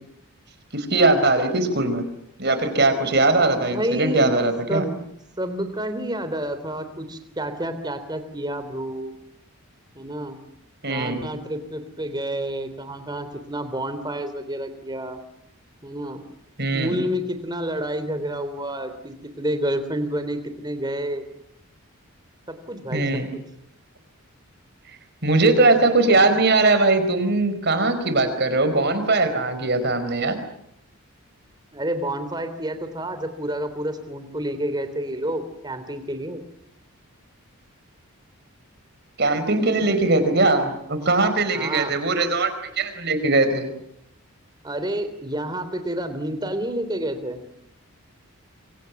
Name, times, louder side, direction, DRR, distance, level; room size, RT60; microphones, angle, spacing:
voice 1, 0.7-2.0 2.4-4.8 10.8-11.3 16.6-16.9 22.9-23.3 25.2-30.4 39.2-43.7, right 2 dB, 50° right, 9 dB, 4.7 m, -20 dB
voice 2, 3.5-4.3 4.7-4.9 5.4-9.1 9.9-10.4 10.9-15.2 15.8-16.2 16.7-21.2 22.5-23.0 23.3-23.4 31.7-36.4 41.5-42.0 44.6-47.4, right 1 dB, 20° right, 9 dB, 3.3 m, -29 dB
27.5 x 25.5 x 7.2 m, 0.74 s
head